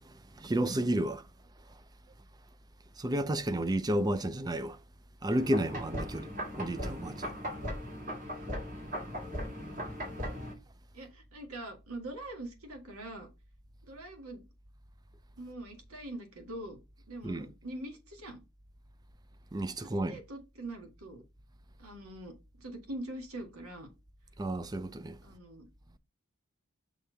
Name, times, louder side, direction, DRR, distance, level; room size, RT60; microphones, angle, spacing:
voice 1, 0.1-1.2 3.0-4.8 5.2-7.3 17.2-17.5 19.5-20.2 24.4-25.2, right 1 dB, 15° right, 0.4 m, -32 dB
sound 1, 5.3-10.5, equal, 35° right, 1.9 m, -38 dB
voice 2, 10.9-13.3 13.9-14.4 15.4-16.8 17.1-18.4 20.1-21.2 21.8-23.9 25.2-25.7, right 1 dB, 75° right, 1.8 m, -43 dB
6.4 x 3.3 x 5.6 m
head